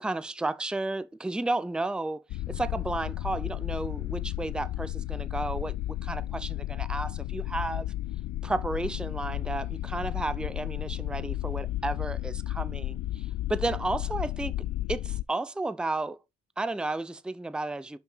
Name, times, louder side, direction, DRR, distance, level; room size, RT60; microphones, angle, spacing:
voice 1, 0.0-2.2 2.5-5.7 6.0-7.9 8.4-14.5 14.9-16.2 16.6-18.0, right 2 dB, 5° right, 0.6 m, -32 dB
sound 1, 2.3-15.2, left 15 dB, 65° left, 0.5 m, -33 dB
5.9 x 5.7 x 5.6 m
cardioid pair, 90°, 30 cm